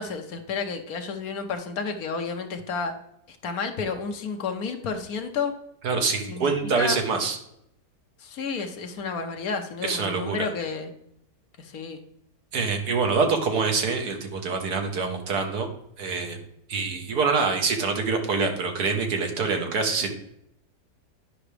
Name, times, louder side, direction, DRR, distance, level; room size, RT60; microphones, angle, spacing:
voice 1, 0.0-2.9 3.4-5.5 6.3-7.0 8.2-10.9 11.6-12.0, left 5 dB, 65° left, 6 dB, 1.2 m, -31 dB
voice 2, 5.8-7.4 9.8-10.5 12.5-15.7 16.0-16.4 16.7-20.1, right 4 dB, 70° right, 4 dB, 1.7 m, -25 dB
9.9 x 5.8 x 3.3 m, 0.78 s
omnidirectional pair, 1.8 m